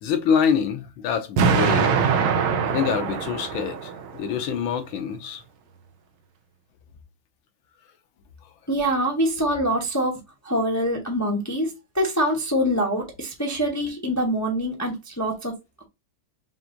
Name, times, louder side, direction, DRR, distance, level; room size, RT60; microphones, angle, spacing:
voice 1, 0.0-2.1 2.6-5.4, left 7 dB, 75° left, 1.5 m, -25 dB
Explosion, 1.4-4.4, right 6 dB, 80° right, 1.5 m, -23 dB
voice 2, 8.7-10.2 10.4-15.5, equal, 15° left, 0.5 m, -24 dB
5.9 x 2.6 x 2.5 m
omnidirectional pair, 2.3 m